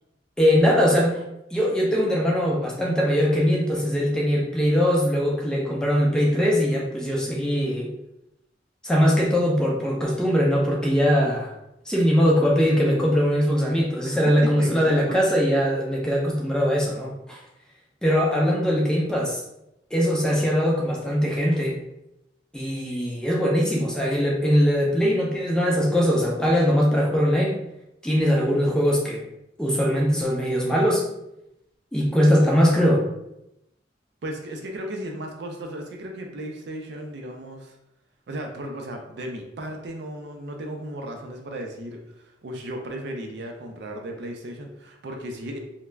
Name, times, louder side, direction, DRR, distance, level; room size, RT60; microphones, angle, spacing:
voice 1, 0.4-1.2 1.5-7.9 8.8-11.5 11.9-17.4 18.0-19.4 19.9-21.8 22.5-27.6 28.0-29.2 29.6-31.0 31.9-33.1, equal, 5° left, -3 dB, 0.4 m, -21 dB
voice 2, 14.1-15.2 34.2-37.8 38.3-42.0 42.4-45.6, right 1 dB, 60° right, 2 dB, 0.4 m, -35 dB
2.3 x 2.0 x 3.2 m, 0.85 s
head